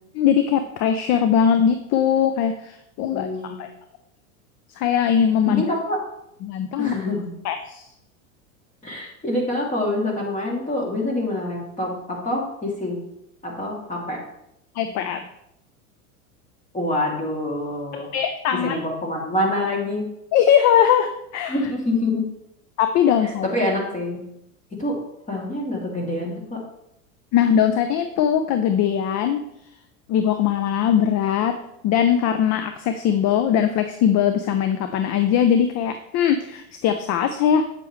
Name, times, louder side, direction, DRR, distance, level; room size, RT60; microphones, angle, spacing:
voice 1, 0.1-3.7 4.8-5.6 6.4-6.9 7.4-7.9 14.7-15.2 17.9-18.8 20.3-21.5 22.8-23.5 27.3-29.4 30.1-31.6 31.8-37.6, left 9 dB, 40° left, 8 dB, 0.7 m, -20 dB
voice 2, 3.1-3.5 5.5-6.0 6.8-7.3 8.8-13.0 13.4-14.2 16.7-18.1 18.5-20.0 21.5-22.3 23.2-24.2 24.7-25.0 25.3-26.6, left 1 dB, 20° left, -1 dB, 2.9 m, -26 dB
8.5 x 7.8 x 3.3 m, 0.79 s
hypercardioid pair, 95°, 42 cm